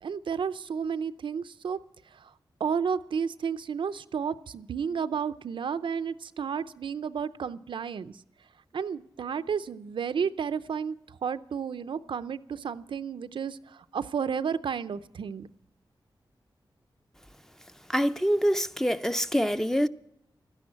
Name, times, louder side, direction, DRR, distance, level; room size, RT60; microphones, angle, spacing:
voice 1, 0.0-1.8 2.1-2.3 2.6-8.1 8.7-11.0 11.2-15.5, right 6 dB, 80° right, 0.5 m, -32 dB
voice 2, 17.9-19.9, equal, 5° left, 0.5 m, -25 dB
13.0 x 10.5 x 8.5 m
wide cardioid pair, 100°, 8 cm